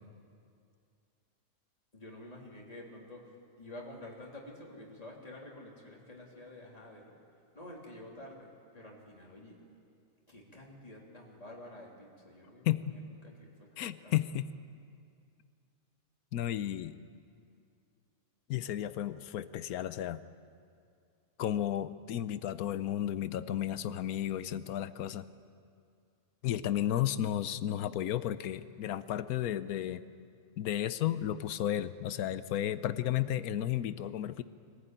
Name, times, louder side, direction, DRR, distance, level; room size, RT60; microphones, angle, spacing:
voice 1, 1.9-7.2 7.5-9.6 10.3-14.2, left 1 dB, 25° left, -2 dB, 3.4 m, -49 dB
voice 2, 13.8-14.5 16.3-16.9 18.5-20.2 21.4-25.2 26.4-30.0 30.6-34.4, left 12 dB, 85° left, 14 dB, 1.2 m, -33 dB
24.0 x 15.0 x 9.2 m, 2.3 s
omnidirectional pair, 1.5 m